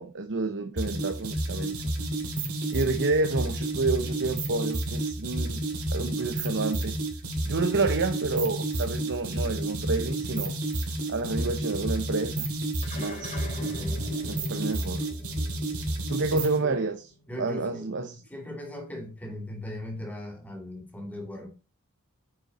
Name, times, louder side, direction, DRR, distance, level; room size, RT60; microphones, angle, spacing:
voice 1, 0.0-1.7 2.7-5.6 5.9-6.9 7.5-10.5 11.1-12.5 12.9-13.4 14.3-15.1 16.1-16.9 17.4-18.2, right 3 dB, 55° right, 0.9 m, -29 dB
sound 1, 0.8-16.6, right 1 dB, 80° right, 2.9 m, -31 dB
sound 2, 12.8-17.4, left 2 dB, 35° left, 3.9 m, -44 dB
voice 2, 13.5-14.1 16.3-16.8 17.3-17.9 18.2-21.5, left 1 dB, 5° left, 2.8 m, -39 dB
9.1 x 5.5 x 4.2 m
head